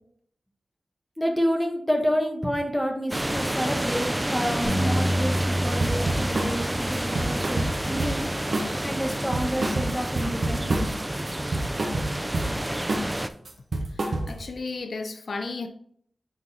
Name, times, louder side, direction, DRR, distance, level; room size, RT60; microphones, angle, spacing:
voice 1, 1.2-8.2 8.8-10.9, equal, 5° left, 1.3 m, -29 dB
sound 1, 3.1-13.3, right 1 dB, 10° right, 0.4 m, -29 dB
Bass guitar, 4.6-9.1 9.7-10.9, equal, 35° left, 1.7 m, -31 dB
sound 2, 5.8-6.5 6.9-8.3 8.5-8.8 9.1-11.0 11.3-12.5 12.9-13.2 13.4-14.5, right 2 dB, 65° right, 1.3 m, -28 dB
voice 2, 13.9-15.7, left 3 dB, 70° left, 0.5 m, -34 dB
8.4 x 3.9 x 4.1 m
wide cardioid pair, 120°, 0 cm